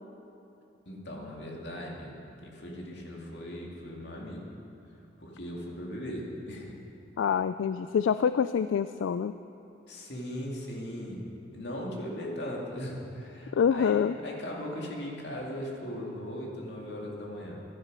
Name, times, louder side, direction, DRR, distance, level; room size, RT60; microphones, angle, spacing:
voice 1, 0.9-2.2 2.4-4.5 5.2-6.8 9.9-11.2 11.5-17.6, equal, 65° left, -2 dB, 2.4 m, -38 dB
voice 2, 7.2-9.3 13.5-14.1, left 7 dB, 85° left, 12 dB, 0.3 m, -26 dB
14.5 x 11.0 x 5.4 m, 3.0 s
head